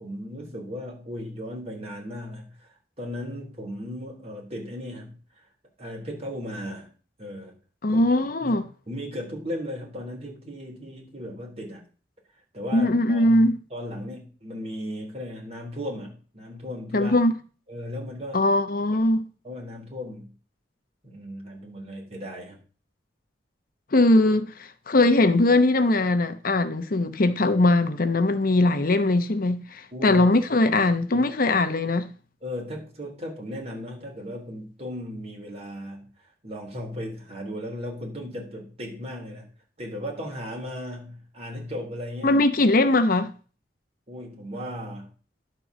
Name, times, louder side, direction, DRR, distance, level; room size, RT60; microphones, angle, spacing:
voice 1, 0.0-2.5 3.0-5.2 5.8-6.9 7.2-7.5 7.9-8.0 8.4-11.8 12.5-13.4 13.7-17.1 17.7-18.4 19.0-19.1 19.4-20.3 21.0-22.6 29.9-30.2 31.1-31.3 32.4-36.1 36.4-39.5 39.8-42.4 44.1-45.1, equal, 35° right, 3.6 m, -36 dB
voice 2, 7.8-8.6 12.7-13.6 16.9-17.3 18.3-19.2 23.9-32.1 42.2-43.3, left 2 dB, 55° left, 0.8 m, -21 dB
11.5 x 4.6 x 6.8 m
head